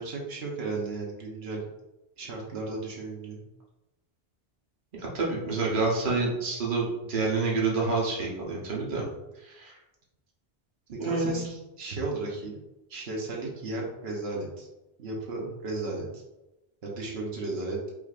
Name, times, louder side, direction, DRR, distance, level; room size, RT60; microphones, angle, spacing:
voice 1, 0.0-1.7 2.2-3.4 10.9-11.4 11.8-12.6 12.9-14.7 15.0-16.2 16.8-17.8, right 3 dB, 90° right, -2 dB, 1.1 m, -34 dB
voice 2, 5.0-9.0 9.4-9.7 11.0-11.4 15.4-15.5, right 3 dB, 55° right, -3 dB, 1.2 m, -28 dB
4.8 x 3.4 x 2.4 m, 0.97 s
omnidirectional pair, 1.0 m